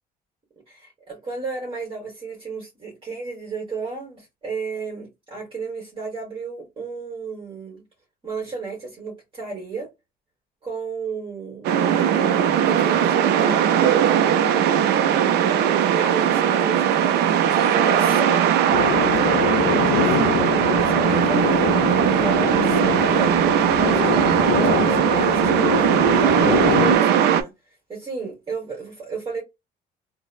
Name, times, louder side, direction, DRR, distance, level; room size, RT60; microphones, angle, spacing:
voice 1, 0.7-7.8 8.2-9.9 10.6-14.3 15.9-18.5 18.8-19.5 19.8-21.7 22.1-23.4 23.7-29.4, right 4 dB, 30° right, 1.4 m, -33 dB
sound 1, 11.6-27.4, right 9 dB, 80° right, 0.5 m, -19 dB
sound 2, 18.7-27.0, left 10 dB, 90° left, 0.4 m, -25 dB
3.9 x 2.1 x 2.4 m
cardioid pair, 110°, 17 cm